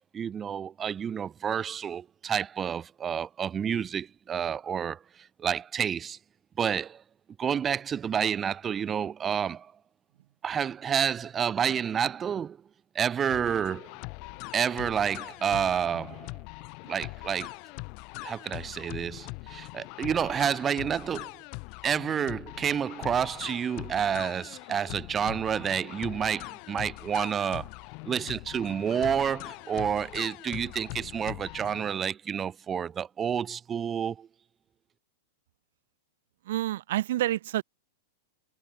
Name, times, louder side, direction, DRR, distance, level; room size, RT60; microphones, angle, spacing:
voice 1, 0.1-5.0 5.4-6.2 6.6-7.0 7.4-9.7 10.4-12.6 12.9-13.9 14.5-16.3 16.9-17.5 18.2-21.3 21.8-27.7 28.0-34.3, right 8 dB, 15° right, 1.7 m, -29 dB
sound 1, 13.3-31.9, left 34 dB, 40° left, 4.5 m, -42 dB
voice 2, 36.4-37.6, right 14 dB, 65° right, 1.3 m, -28 dB
supercardioid pair, 155°, 0 cm